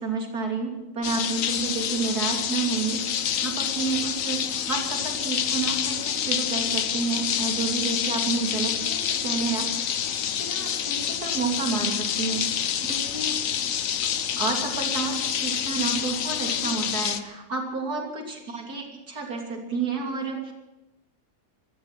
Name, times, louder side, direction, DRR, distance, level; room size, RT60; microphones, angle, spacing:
voice 1, 0.0-3.0 3.4-9.9 10.2-13.4 14.4-20.5, right 4 dB, 85° right, 1 dB, 3.4 m, -30 dB
sound 1, 1.0-17.2, left 9 dB, 65° left, 1.2 m, -27 dB
16.5 x 13.5 x 6.0 m, 0.99 s
omnidirectional pair, 1.6 m